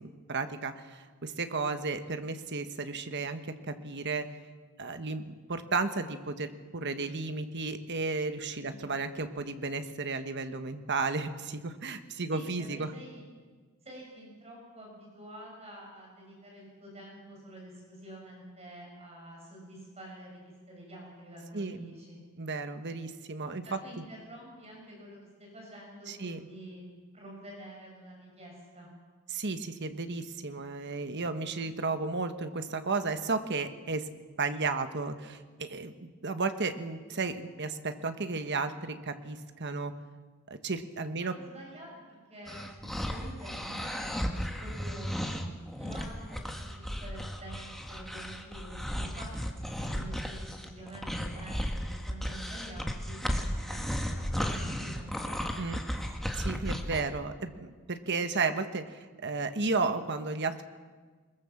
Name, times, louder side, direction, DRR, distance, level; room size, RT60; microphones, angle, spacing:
voice 1, 0.0-4.3 4.8-12.9 21.5-21.9 22.4-23.8 26.1-26.4 29.3-34.1 34.4-39.9 40.5-41.4 55.6-55.8 56.3-60.6, right 3 dB, 50° right, 9 dB, 1.3 m, -33 dB
voice 2, 12.3-13.2 13.8-20.4 20.7-22.2 23.6-26.8 27.1-28.9 31.6-31.8 41.2-45.1 45.3-45.4 45.8-55.4, right 1 dB, 30° right, -2 dB, 6.9 m, -48 dB
sound 1, 42.5-57.0, equal, ahead, 1.7 m, -35 dB
22.5 x 21.0 x 7.3 m, 1.5 s
head